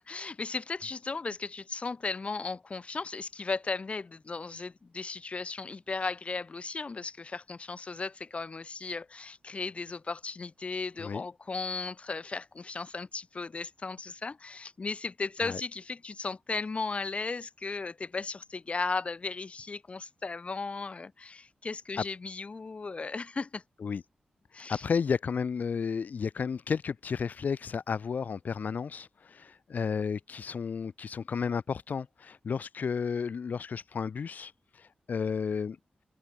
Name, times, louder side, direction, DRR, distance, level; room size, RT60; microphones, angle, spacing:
voice 1, 0.1-23.6 24.5-24.9, left 4 dB, 45° left, 1.1 m, -36 dB
voice 2, 24.7-34.5 35.1-35.8, left 6 dB, 65° left, 0.7 m, -32 dB
open air
wide cardioid pair, 80°, 3 cm